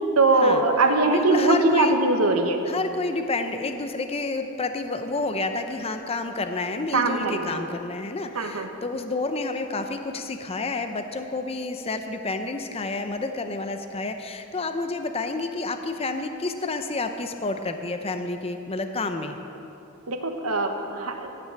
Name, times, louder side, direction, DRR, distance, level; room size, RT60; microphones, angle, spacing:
voice 1, 0.2-2.6 6.9-7.6 8.3-8.7 20.1-21.3, right 2 dB, 85° right, 5 dB, 1.2 m, -21 dB
voice 2, 1.1-1.9 2.6-19.4, left 3 dB, 25° left, 7 dB, 0.6 m, -29 dB
17.0 x 6.1 x 7.6 m, 2.9 s
head